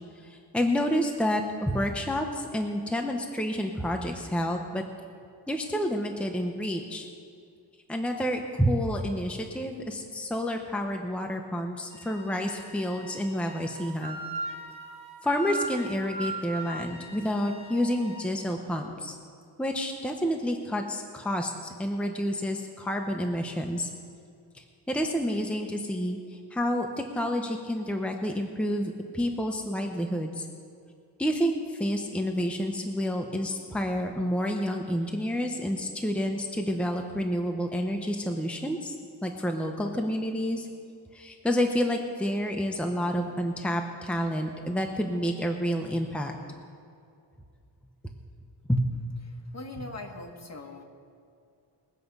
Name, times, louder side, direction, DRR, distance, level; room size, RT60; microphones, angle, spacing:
voice 1, 0.2-4.8 5.5-7.1 7.9-14.2 15.2-19.2 19.6-23.9 24.5-30.5 31.2-38.9 39.2-40.7 41.1-46.3 48.0-48.1 48.7-48.8, equal, 5° left, 3 dB, 1.0 m, -29 dB
Wind instrument woodwind instrument, 11.9-18.3, right 2 dB, 15° right, 2.0 m, -39 dB
voice 2, 49.3-50.8, left 2 dB, 40° left, 2 dB, 1.7 m, -41 dB
21.5 x 7.6 x 5.4 m, 2.4 s
wide cardioid pair, 95°, 41 cm